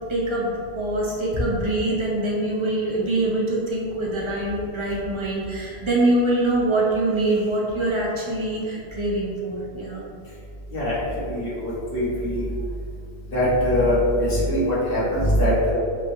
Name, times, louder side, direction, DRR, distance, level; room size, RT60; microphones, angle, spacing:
voice 1, 0.1-10.0, right 1 dB, 30° right, -5 dB, 1.0 m, -24 dB
voice 2, 10.7-12.5 13.3-15.7, equal, 60° left, -8 dB, 1.6 m, -22 dB
5.9 x 3.3 x 2.8 m, 2.3 s
omnidirectional pair, 1.1 m